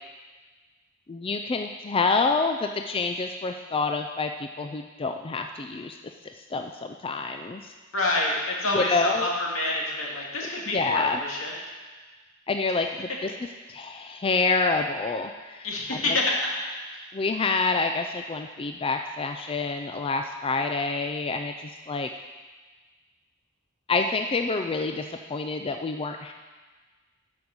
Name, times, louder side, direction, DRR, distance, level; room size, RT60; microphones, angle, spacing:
voice 1, 1.1-6.0 6.2-7.7 8.7-9.3 10.7-11.2 12.5-13.3 13.7-16.0 17.1-22.1 23.9-25.0 25.3-26.3, left 3 dB, 25° left, 5 dB, 0.4 m, -27 dB
voice 2, 7.9-11.5 15.6-16.6 16.9-17.0, left 2 dB, 80° left, -2 dB, 2.1 m, -27 dB
10.5 x 5.4 x 6.6 m, 1.3 s
head